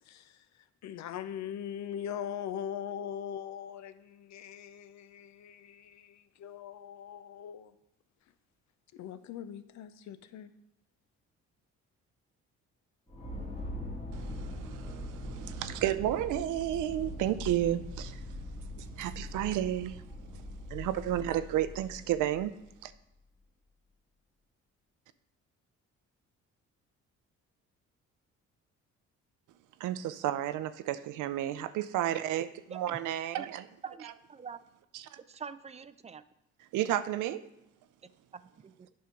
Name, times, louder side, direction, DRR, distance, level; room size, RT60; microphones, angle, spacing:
voice 1, 0.0-7.7 8.9-10.5, left 9 dB, 65° left, 0.6 m, -41 dB
sound 1, 13.1-22.7, left 1 dB, 20° left, 1.6 m, -42 dB
voice 2, 14.1-20.1 20.3-22.9 29.8-33.7 34.0-34.1 34.9-35.2 36.6-37.4, right 12 dB, 85° right, 0.5 m, -32 dB
voice 3, 33.8-34.6 35.3-36.2 38.3-38.9, right 6 dB, 25° right, 0.3 m, -45 dB
8.5 x 3.8 x 5.8 m
cardioid pair, 90°, 30 cm